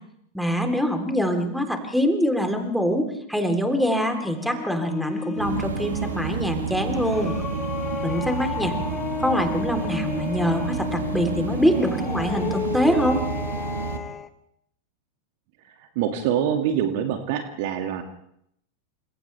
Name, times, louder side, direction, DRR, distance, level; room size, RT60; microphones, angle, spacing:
voice 1, 0.3-7.3 8.0-8.7 9.2-13.2, equal, ahead, 4 dB, 3.7 m, -24 dB
sound 1, 3.8-14.3, left 6 dB, 20° left, 1.4 m, -33 dB
sound 2, 5.4-14.0, right 5 dB, 70° right, 1.8 m, -30 dB
voice 2, 15.8-18.0, right 9 dB, 50° right, 6 dB, 2.2 m, -25 dB
29.5 x 26.5 x 3.5 m, 0.72 s
figure-of-eight pair, 90°, 0 cm